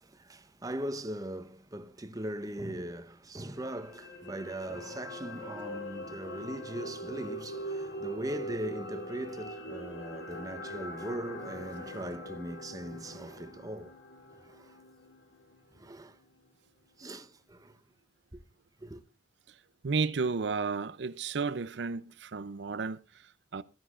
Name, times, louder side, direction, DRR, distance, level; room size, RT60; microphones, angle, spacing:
voice 1, 0.0-13.9 14.5-14.8 15.7-16.2 17.0-17.7 18.8-19.0, right 1 dB, 20° right, 0.9 m, -40 dB
sound 1, 3.6-15.9 16.2-16.4, equal, 85° left, 3.1 m, -42 dB
voice 2, 19.8-23.6, right 4 dB, 75° right, 0.6 m, -33 dB
14.0 x 13.5 x 2.5 m
head